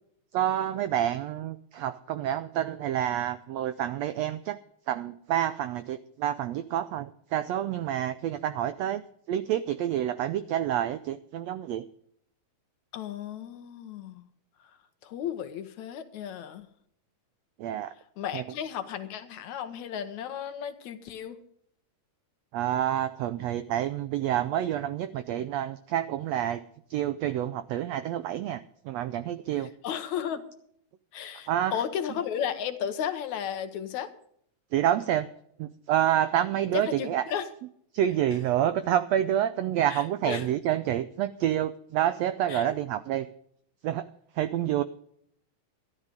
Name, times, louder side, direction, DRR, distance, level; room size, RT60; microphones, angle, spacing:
voice 1, 0.3-4.6 4.9-9.0 9.3-11.8 17.6-17.9 18.3-18.4 22.5-26.6 26.9-29.7 31.5-31.8 34.7-35.3 35.6-37.2 37.9-43.3 43.8-44.1 44.4-44.8, right 11 dB, 85° right, 13 dB, 1.5 m, -28 dB
voice 2, 12.9-14.2 15.0-16.7 18.2-21.4 29.6-30.4 31.1-34.1 36.7-37.5 39.9-40.5 42.5-42.8, left 9 dB, 70° left, 8 dB, 2.3 m, -34 dB
12.5 x 12.5 x 5.2 m, 0.67 s
omnidirectional pair, 3.7 m